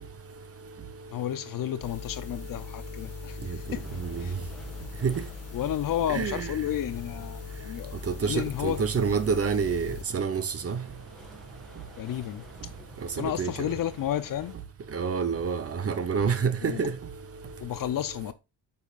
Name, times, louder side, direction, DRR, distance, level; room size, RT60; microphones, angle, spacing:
voice 1, 1.1-3.8 4.2-4.3 5.5-8.9 12.0-12.4 13.1-14.6 16.6-16.8 17.6-18.3, left 11 dB, 50° left, 0.6 m, -32 dB
sound 1, 1.8-10.0, left 5 dB, 35° left, 1.5 m, -41 dB
sound 2, 3.6-14.6, right 1 dB, ahead, 2.0 m, -51 dB
voice 2, 6.1-6.5 8.1-10.8 13.4-13.5 14.9-16.9, right 6 dB, 35° right, 0.9 m, -27 dB
8.1 x 5.7 x 2.5 m
cardioid pair, 120°, 42 cm